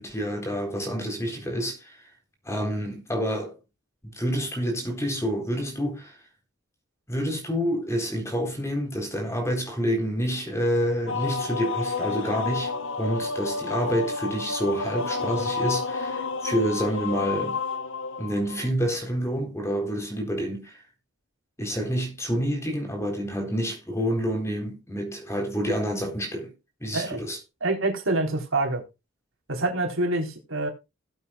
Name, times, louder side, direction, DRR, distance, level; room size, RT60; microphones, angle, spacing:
voice 1, 0.0-2.0 2.5-3.6 4.0-6.2 7.1-12.7 13.0-17.6 18.2-20.8 21.6-26.5 26.8-27.4, equal, 15° left, 3.9 m, -28 dB
sound 1, 11.1-18.7, left 4 dB, 65° left, 1.3 m, -30 dB
voice 2, 27.6-28.8 29.5-30.7, right 2 dB, 75° right, 4.0 m, -26 dB
18.5 x 8.3 x 2.4 m
head